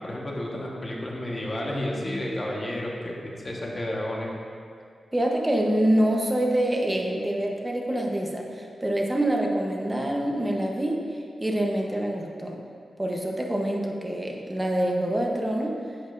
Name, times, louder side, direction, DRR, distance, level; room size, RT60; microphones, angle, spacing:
voice 1, 0.0-4.3, left 1 dB, 30° left, -3 dB, 1.3 m, -31 dB
voice 2, 5.1-11.0 11.4-12.6 13.0-15.7, right 1 dB, 15° right, 0 dB, 0.9 m, -26 dB
10.5 x 7.1 x 2.6 m, 2.3 s
wide cardioid pair, 105°, 0 cm